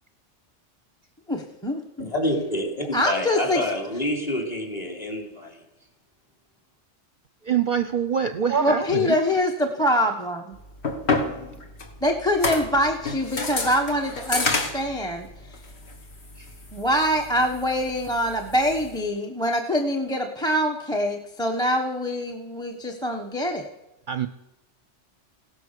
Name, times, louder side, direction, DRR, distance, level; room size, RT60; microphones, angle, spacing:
voice 1, 1.3-1.8 2.9-3.6 8.6-10.4 12.0-15.3 16.7-23.7, equal, 5° left, 4 dB, 1.1 m, -24 dB
voice 2, 2.0-5.6, left 1 dB, 35° left, 2 dB, 3.5 m, -28 dB
voice 3, 7.4-9.2 16.4-16.5 24.1-24.3, right 7 dB, 50° right, 10 dB, 0.7 m, -25 dB
sound 1, 10.5-19.0, left 3 dB, 60° left, 2.0 m, -30 dB
16.5 x 13.0 x 6.7 m, 0.93 s
omnidirectional pair, 1.2 m